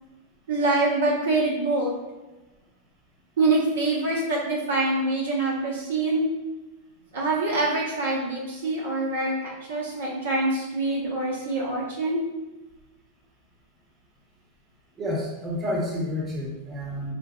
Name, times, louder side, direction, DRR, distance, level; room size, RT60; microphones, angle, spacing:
voice 1, 0.5-2.0 3.4-6.3 7.1-12.2, right 2 dB, 85° right, -5 dB, 1.0 m, -25 dB
voice 2, 15.0-17.1, left 1 dB, 25° right, -3 dB, 0.9 m, -29 dB
3.8 x 2.6 x 2.3 m, 1.1 s
hypercardioid pair, 110°, 0 cm